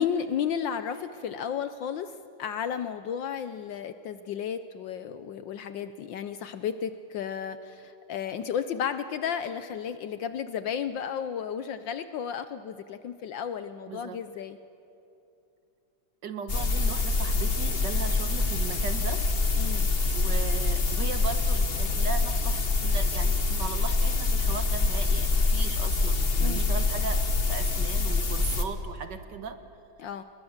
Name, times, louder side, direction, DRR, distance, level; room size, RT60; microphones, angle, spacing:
voice 1, 0.0-2.1 2.4-14.6 19.6-19.9 26.4-26.7 30.0-30.2, left 8 dB, 70° left, 11 dB, 1.3 m, -33 dB
voice 2, 13.9-14.2 16.2-19.3 20.1-27.2 27.5-29.6, right 6 dB, 55° right, 9 dB, 1.8 m, -37 dB
sound 1, 16.5-28.6, left 3 dB, 30° left, 1.3 m, -25 dB
30.0 x 21.5 x 7.2 m, 2.8 s
omnidirectional pair, 2.4 m